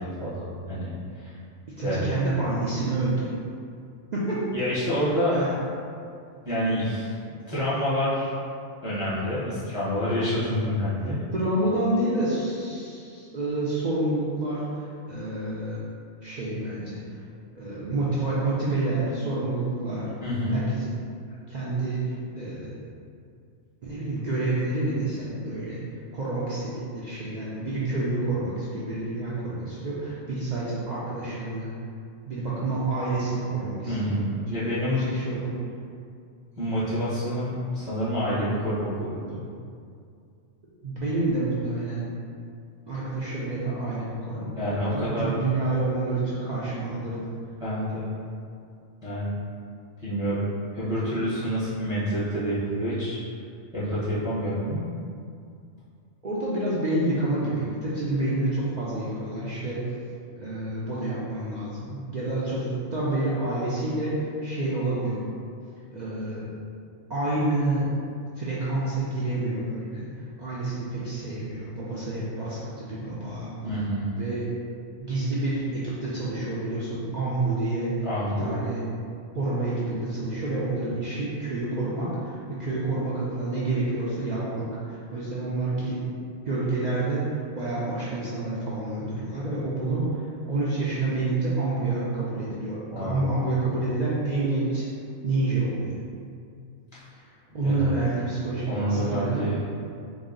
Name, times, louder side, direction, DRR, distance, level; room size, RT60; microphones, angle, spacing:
voice 1, 0.0-1.3 1.8-2.1 4.5-5.4 6.4-7.1 7.5-8.3 8.8-11.2 20.2-20.6 33.9-35.1 36.5-39.4 44.5-45.3 47.6-48.1 49.0-49.3 50.0-50.5 50.7-53.2 53.7-54.9 73.6-74.2 78.0-78.6 92.9-93.3 97.0-97.1 97.5-97.9 98.7-99.6, equal, 5° right, -10 dB, 0.7 m, -28 dB
voice 2, 1.8-3.4 4.1-4.4 5.3-5.5 11.3-15.8 16.2-17.0 17.6-20.1 20.5-20.9 21.5-22.7 23.8-25.8 26.1-31.7 32.3-34.0 34.6-34.7 35.1-35.5 40.8-42.0 42.9-47.2 56.2-59.8 60.4-65.2 65.9-66.5 67.1-67.9 68.4-70.1 70.4-73.5 74.2-74.5 75.0-78.1 78.4-78.8 79.3-86.0 86.4-94.8 95.2-96.0 97.5-99.4, right 2 dB, 75° right, -8 dB, 0.4 m, -28 dB
4.0 x 2.0 x 3.7 m, 2.4 s
omnidirectional pair, 1.4 m